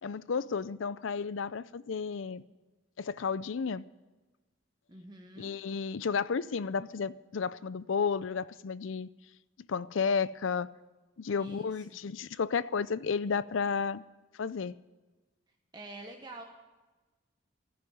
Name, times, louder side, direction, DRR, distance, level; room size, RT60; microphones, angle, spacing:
voice 1, 0.0-2.4 3.0-3.9 5.4-9.1 9.7-10.7 11.2-14.0 14.3-14.7, left 5 dB, 75° left, 0.5 m, -32 dB
voice 2, 4.9-5.5 11.4-11.7 15.7-16.4, right 2 dB, 20° right, 1.1 m, -46 dB
13.5 x 10.5 x 9.4 m
head